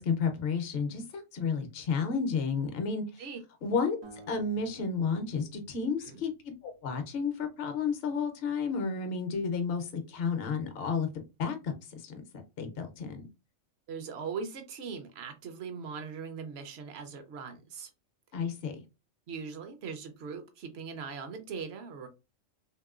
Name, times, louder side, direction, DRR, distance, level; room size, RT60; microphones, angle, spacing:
voice 1, 0.0-3.2 3.6-4.0 4.3-11.1 11.4-12.2 12.6-13.3 18.3-18.8, left 5 dB, 55° left, 0.8 m, -32 dB
sound 1, 4.0-7.2, right 2 dB, 85° right, 1.1 m, -54 dB
voice 2, 13.9-17.9 19.3-22.1, right 5 dB, 60° right, 0.8 m, -40 dB
3.0 x 2.9 x 2.3 m
omnidirectional pair, 1.3 m